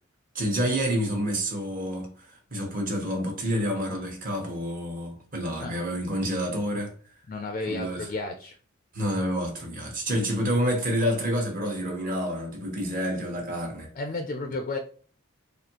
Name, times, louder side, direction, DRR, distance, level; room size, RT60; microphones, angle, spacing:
voice 1, 0.3-6.9 7.7-8.1 8.9-13.9, equal, 40° right, 1.1 m, -28 dB
voice 2, 7.3-8.6 13.9-14.8, left 3 dB, 40° left, 0.4 m, -32 dB
4.2 x 2.7 x 2.9 m
head